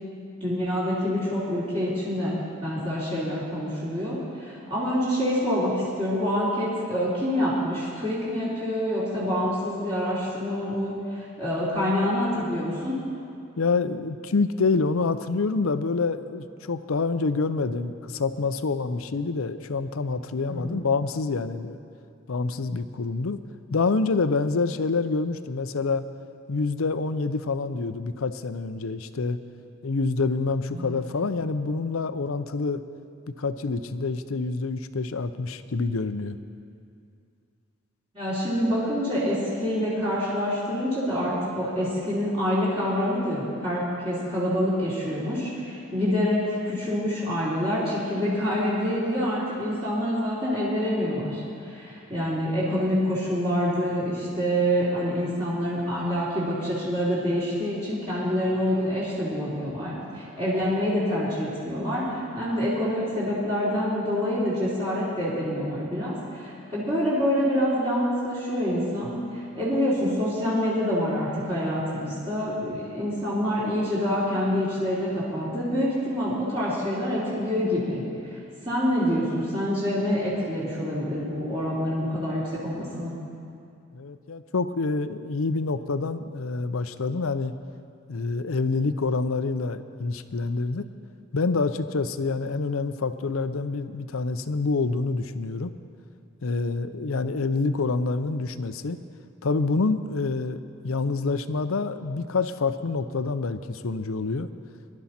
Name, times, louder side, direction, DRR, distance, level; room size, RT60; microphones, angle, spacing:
voice 1, 0.4-12.9 20.4-20.8 30.7-31.0 38.1-78.3 78.6-83.1, equal, 30° right, -10 dB, 3.0 m, -26 dB
voice 2, 13.6-21.8 22.3-23.4 23.7-26.0 26.5-29.4 29.8-32.8 33.4-36.4 83.9-87.5 88.1-90.8 91.3-95.8 96.4-99.0 99.4-104.5, left 3 dB, 85° left, 11 dB, 0.6 m, -27 dB
20.5 x 12.0 x 4.3 m, 2.4 s
head